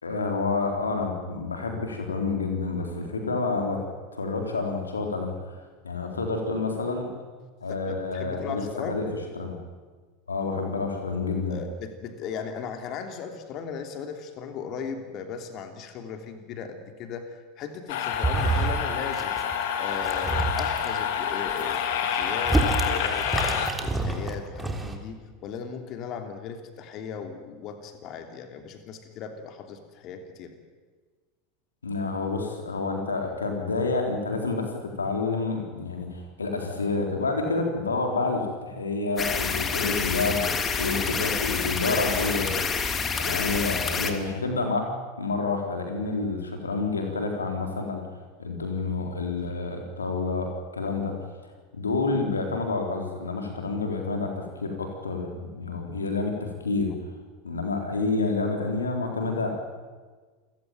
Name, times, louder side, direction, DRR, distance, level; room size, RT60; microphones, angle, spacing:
voice 1, 0.0-3.8 4.1-7.1 7.6-9.1 9.4-9.5 10.3-11.6 31.8-42.5 43.2-44.9 45.2-51.1 51.7-56.9 57.4-59.6, left 3 dB, 80° left, 3 dB, 4.0 m, -29 dB
voice 2, 7.7-9.0 11.5-19.4 19.8-23.5 23.8-30.5, left 6 dB, 45° left, 7 dB, 3.1 m, -37 dB
sound 1, 17.9-23.7, left 8 dB, 60° left, 3.1 m, -28 dB
sound 2, 18.1-18.9 19.1-19.5 19.9-20.9 21.5-25.0, right 3 dB, 10° right, 3.6 m, -28 dB
sound 3, 39.2-44.1, left 5 dB, 25° left, 3.0 m, -28 dB
29.0 x 17.0 x 9.4 m, 1.4 s
figure-of-eight pair, 80°, 0 cm